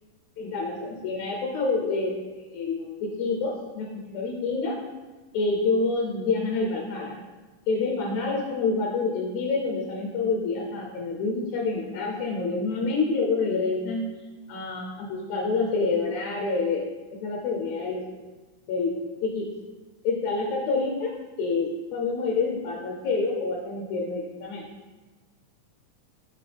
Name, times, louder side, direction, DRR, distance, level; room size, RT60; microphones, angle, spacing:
voice 1, 0.4-2.1 2.5-4.8 5.3-7.2 7.7-14.1 14.5-16.8 17.2-18.0 18.7-19.5 20.0-24.7, left 3 dB, 70° left, 0 dB, 2.0 m, -27 dB
6.5 x 6.0 x 3.4 m, 1.2 s
omnidirectional pair, 3.8 m